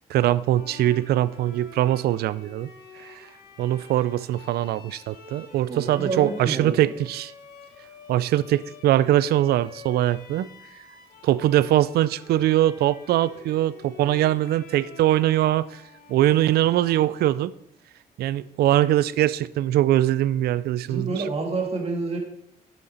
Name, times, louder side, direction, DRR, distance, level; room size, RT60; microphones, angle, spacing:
voice 1, 0.1-2.7 3.0-3.3 3.6-7.3 8.1-10.5 11.2-15.8 16.1-17.5 18.2-21.2, right 13 dB, 80° right, 0.4 m, -22 dB
Bowed string instrument, 0.5-18.0, left 5 dB, 75° left, 1.2 m, -48 dB
voice 2, 5.7-6.9 20.8-22.2, right 3 dB, 40° right, 1.9 m, -28 dB
7.4 x 6.5 x 4.3 m
cardioid pair, 90°, 16 cm